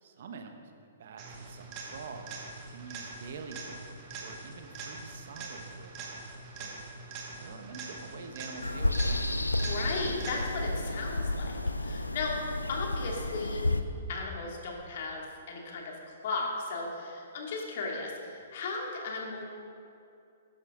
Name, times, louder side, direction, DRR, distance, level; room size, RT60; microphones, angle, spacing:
voice 1, 0.0-3.8 4.2-6.3 6.6-6.8 7.4-9.3 12.2-12.3, right 5 dB, 55° right, 5 dB, 1.2 m, -46 dB
sound 1, 1.2-10.8 18.7-18.8, right 3 dB, 35° right, 1.9 m, -43 dB
sound 2, 8.6-13.8, left 2 dB, 90° left, 0.6 m, -31 dB
voice 2, 9.6-12.3 12.7-13.6 14.1-16.0 16.2-19.4, left 3 dB, 50° left, -1 dB, 2.4 m, -36 dB
13.0 x 11.0 x 3.7 m, 2.5 s
figure-of-eight pair, 120°, 0 cm